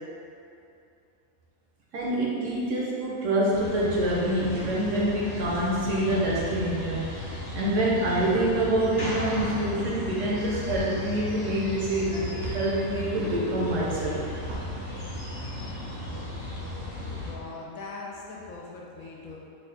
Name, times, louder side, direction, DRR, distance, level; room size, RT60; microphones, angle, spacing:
voice 1, 1.9-14.3, right 1 dB, 65° right, -5 dB, 0.9 m, -26 dB
sound 1, 3.5-17.3, left 1 dB, 55° left, 0.6 m, -36 dB
sound 2, 9.3-9.6 10.7-10.9 12.4-12.6 14.4-14.7, equal, 80° right, 1.3 m, -36 dB
voice 2, 17.0-19.4, left 3 dB, 75° left, -3 dB, 1.0 m, -40 dB
3.3 x 2.2 x 3.9 m, 2.6 s
omnidirectional pair, 1.5 m